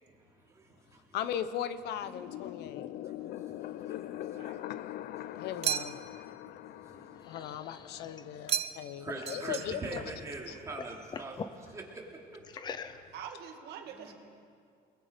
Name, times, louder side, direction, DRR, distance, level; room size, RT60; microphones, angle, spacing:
voice 1, 0.5-1.2 3.0-4.6 4.8-5.7 6.3-7.4 8.1-8.5 8.8-12.0 12.3-12.4 13.9-14.1, right 3 dB, 20° right, -2 dB, 3.1 m, -45 dB
voice 2, 1.1-2.9 5.4-6.0 7.3-10.0 10.5-10.6, left 9 dB, 90° left, 12 dB, 1.1 m, -38 dB
sound 1, 2.0-8.6, left 13 dB, 60° left, 0.5 m, -42 dB
voice 3, 4.2-4.7 13.1-14.1, right 8 dB, 80° right, 4 dB, 2.3 m, -45 dB
sound 2, 5.6-6.3 8.5-9.0 9.3-10.0, right 10 dB, 40° right, 0.5 m, -34 dB
sound 3, 6.8-10.2 10.5-11.6 12.4-13.3, left 5 dB, 25° left, 0.7 m, -44 dB
29.5 x 21.0 x 5.3 m, 2.2 s
cardioid pair, 180°, 17 cm